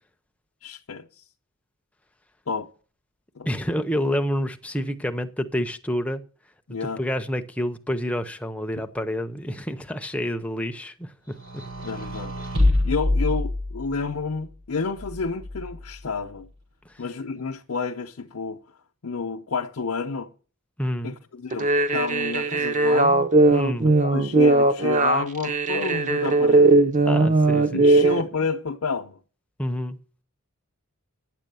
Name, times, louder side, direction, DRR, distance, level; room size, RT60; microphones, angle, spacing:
voice 1, 0.6-1.1 2.5-2.7 3.4-3.5 6.7-7.0 11.8-12.3 12.8-16.5 17.0-18.6 19.0-20.3 21.0-23.3 24.0-26.8 27.7-29.2, left 4 dB, 65° left, 0.7 m, -30 dB
voice 2, 3.5-6.2 6.7-11.6 16.9-17.0 20.8-21.2 23.5-23.9 27.1-28.0 29.6-30.0, equal, 5° left, 0.6 m, -28 dB
sound 1, 11.4-14.1 15.0-15.9, left 2 dB, 60° right, 5.4 m, -25 dB
sound 2, 21.5-28.2, right 2 dB, 35° right, 0.7 m, -19 dB
9.8 x 7.5 x 6.8 m
head